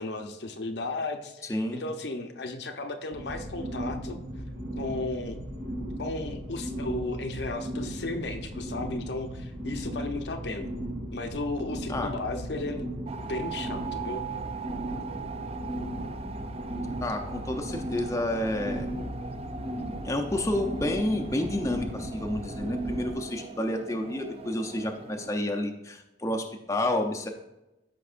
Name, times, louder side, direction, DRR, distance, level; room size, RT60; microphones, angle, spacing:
voice 1, 0.0-4.2 4.8-5.4 6.0-10.7 11.1-12.9 13.2-14.2, left 2 dB, 70° left, 5 dB, 0.8 m, -34 dB
voice 2, 1.5-1.9 11.9-12.5 17.0-18.9 20.0-27.3, left 1 dB, 15° left, 2 dB, 0.6 m, -30 dB
sound 1, 3.1-23.1, equal, 75° right, 2.5 m, -36 dB
sound 2, 13.1-25.3, right 5 dB, 35° right, 0.4 m, -41 dB
13.0 x 5.2 x 2.5 m, 0.94 s
head